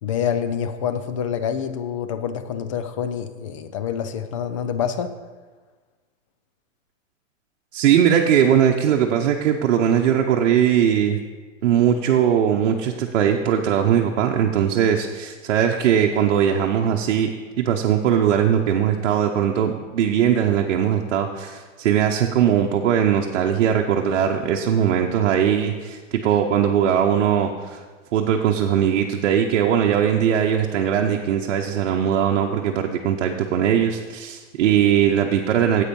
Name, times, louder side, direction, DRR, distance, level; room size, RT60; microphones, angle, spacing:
voice 1, 0.0-5.1, left 8 dB, 25° left, 11 dB, 0.4 m, -26 dB
voice 2, 7.7-11.2 11.6-17.3 17.6-27.8 28.1-35.8, right 9 dB, 60° right, 1 dB, 0.9 m, -20 dB
9.7 x 8.4 x 5.4 m, 1.4 s
hypercardioid pair, 160°, 39 cm